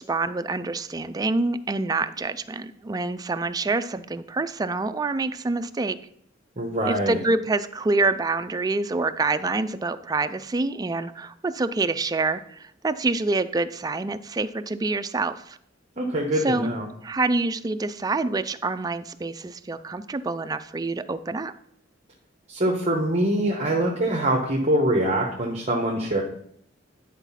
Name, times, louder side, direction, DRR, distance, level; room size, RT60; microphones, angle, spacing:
voice 1, 0.0-6.0 6.9-15.6 16.4-16.7 17.0-21.5, right 3 dB, 20° right, 11 dB, 0.4 m, -26 dB
voice 2, 6.6-7.2 16.0-16.9 22.5-26.2, right 1 dB, 35° right, 0 dB, 1.1 m, -24 dB
10.5 x 4.0 x 5.7 m, 0.69 s
head